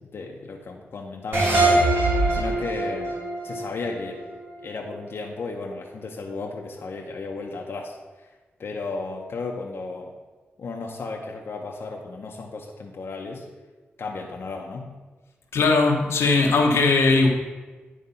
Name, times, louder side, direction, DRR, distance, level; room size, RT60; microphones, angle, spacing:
voice 1, 0.1-1.9 2.3-3.1 3.4-4.2 4.6-8.0 8.6-10.1 10.6-13.4 14.0-14.9, left 3 dB, 65° left, 0 dB, 0.8 m, -34 dB
sound 1, 1.3-4.6, right 2 dB, 60° right, 2.3 m, -23 dB
voice 2, 15.5-17.3, left 3 dB, 90° left, 1 dB, 1.0 m, -19 dB
9.7 x 3.3 x 5.4 m, 1.3 s
cardioid pair, 80°, 4 cm